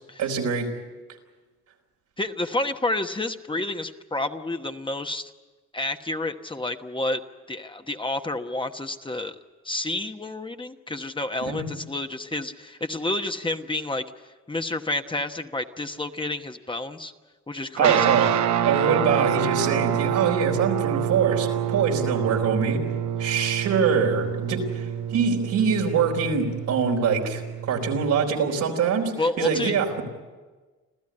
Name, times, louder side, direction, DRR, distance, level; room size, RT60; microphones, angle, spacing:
voice 1, 0.2-0.7 11.4-11.7 17.8-18.4 18.6-22.8 23.2-30.0, right 6 dB, 85° right, 1 dB, 4.3 m, -24 dB
voice 2, 2.2-5.3 5.7-7.2 7.5-9.4 9.6-17.1 17.5-18.1 29.2-29.8, left 2 dB, 15° left, 6 dB, 1.2 m, -29 dB
sound 1, 17.8-28.3, right 9 dB, 70° right, 1.1 m, -27 dB
26.5 x 15.0 x 9.9 m, 1.3 s
cardioid pair, 90°, 30 cm